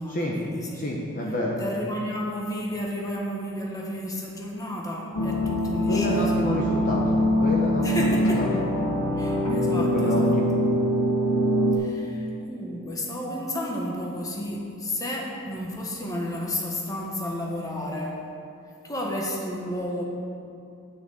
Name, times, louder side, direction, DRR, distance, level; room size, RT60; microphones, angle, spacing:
voice 1, 0.0-0.8 1.6-6.4 7.8-8.4 9.2-10.3 11.8-18.2 18.8-20.0, left 1 dB, 15° left, -2 dB, 1.4 m, -32 dB
voice 2, 0.7-1.6 5.8-8.4 9.7-10.5, left 1 dB, 40° left, -3 dB, 0.9 m, -29 dB
sound 1, 5.1-11.7, equal, 80° left, 1.7 m, -23 dB
9.3 x 6.2 x 7.8 m, 2.5 s
head